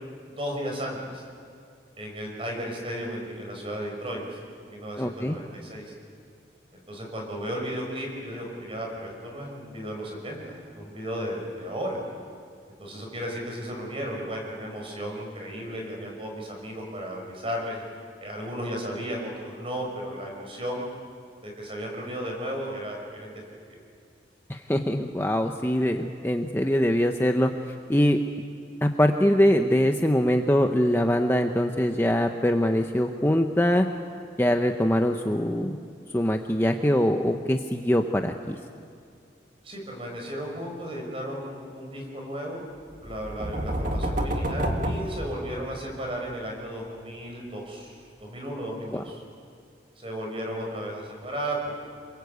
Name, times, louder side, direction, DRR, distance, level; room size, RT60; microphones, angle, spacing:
voice 1, 0.4-1.2 2.0-5.9 6.7-12.0 12.7-17.8 18.2-20.8 21.4-23.3 23.7-23.8 39.6-42.6 43.0-49.2 50.0-51.8, equal, 30° right, 0 dB, 6.0 m, -34 dB
voice 2, 5.0-5.4 24.5-27.5 27.9-28.2 28.8-33.9 34.4-35.8 36.1-38.6 48.9-49.0, equal, 15° left, 4 dB, 0.8 m, -23 dB
sound 1, 43.0-46.0, right 1 dB, 45° right, 2.3 m, -29 dB
28.5 x 23.0 x 8.2 m, 2.3 s
head